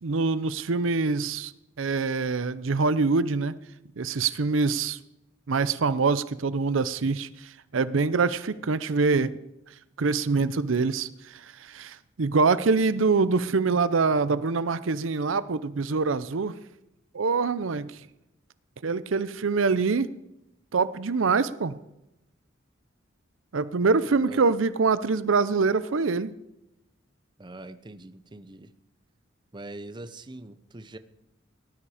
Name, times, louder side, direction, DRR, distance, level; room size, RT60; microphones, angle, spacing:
voice 1, 0.0-1.5 1.8-3.5 4.0-5.0 5.5-9.3 10.0-16.6 17.1-18.0 18.8-20.1 20.7-21.8 23.5-26.3, right 4 dB, 75° right, 15 dB, 0.6 m, -25 dB
voice 2, 24.1-24.5 27.4-28.7 29.5-31.0, right 2 dB, 25° right, 11 dB, 0.7 m, -43 dB
18.0 x 11.0 x 5.0 m, 0.88 s
head